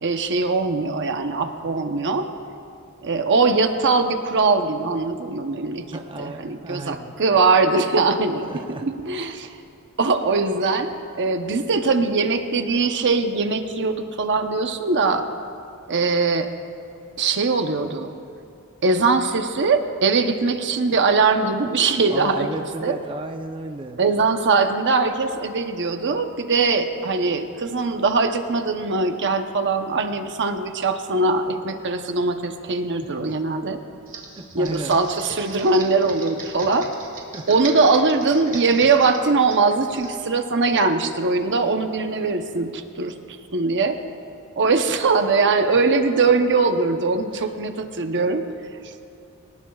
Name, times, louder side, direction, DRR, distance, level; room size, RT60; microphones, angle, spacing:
voice 1, 0.0-2.3 3.0-5.8 6.2-8.5 8.8-9.5 10.0-10.9 11.2-15.3 15.9-16.5 17.2-18.1 18.8-22.5 22.8-23.0 24.0-33.8 34.5-36.9 37.5-43.1 43.5-44.0 44.6-48.4, right 4 dB, 55° right, 6 dB, 0.9 m, -21 dB
voice 2, 5.9-7.2 8.5-8.9 22.1-24.0 33.0-33.4 34.4-35.0 37.3-37.5 47.3-47.5, right 2 dB, 25° right, 3 dB, 0.7 m, -33 dB
Computer keyboard, 34.1-40.2, right 4 dB, 40° right, 2.2 m, -39 dB
23.5 x 19.0 x 2.4 m, 2.6 s
head